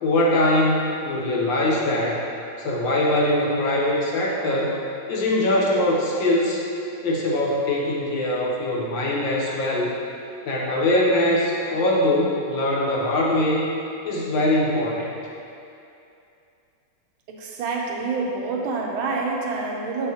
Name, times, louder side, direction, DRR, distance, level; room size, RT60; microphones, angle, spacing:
voice 1, 0.0-2.2 2.6-4.7 5.1-6.6 7.0-9.9 10.4-13.7 14.0-15.1, left 1 dB, 65° left, -3 dB, 1.4 m, -22 dB
voice 2, 17.3-20.1, right 3 dB, 75° right, -1 dB, 1.4 m, -27 dB
7.6 x 5.6 x 2.8 m, 2.6 s
omnidirectional pair, 2.4 m